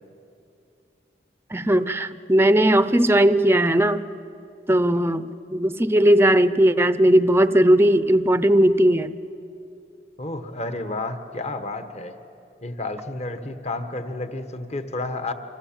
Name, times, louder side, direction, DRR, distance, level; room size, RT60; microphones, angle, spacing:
voice 1, 1.5-4.0 4.7-9.1, right 1 dB, 15° right, 13 dB, 0.6 m, -18 dB
voice 2, 10.2-12.2 12.6-15.3, left 2 dB, 40° left, 9 dB, 1.3 m, -31 dB
28.0 x 26.5 x 7.4 m, 2.7 s
head